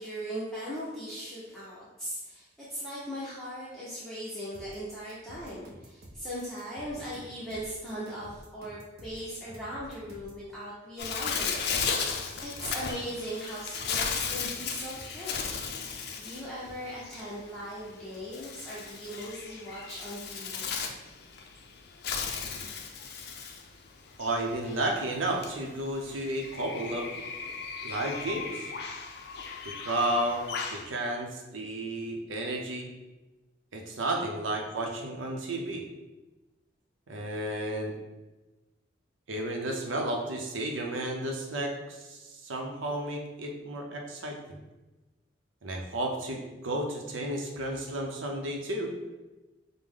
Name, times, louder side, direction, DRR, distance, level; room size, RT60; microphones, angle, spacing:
voice 1, 0.0-15.6 16.2-20.7, equal, ahead, -10 dB, 0.7 m, -39 dB
sound 1, 4.5-10.4, equal, 50° right, 0.6 m, -50 dB
Bird, 11.0-30.9, left 5 dB, 55° left, 0.4 m, -36 dB
sound 2, 11.2-11.5 12.1-12.7 13.8-14.0 15.0-15.1 15.5-15.6 16.7-16.8, equal, 25° right, 1.4 m, -50 dB
voice 2, 24.2-27.1 27.8-28.7 29.6-32.9 33.7-35.8 37.1-37.9 39.3-44.6 45.6-48.9, right 1 dB, 90° right, 1 dB, 0.7 m, -32 dB
5.1 x 2.1 x 3.6 m, 1.1 s
head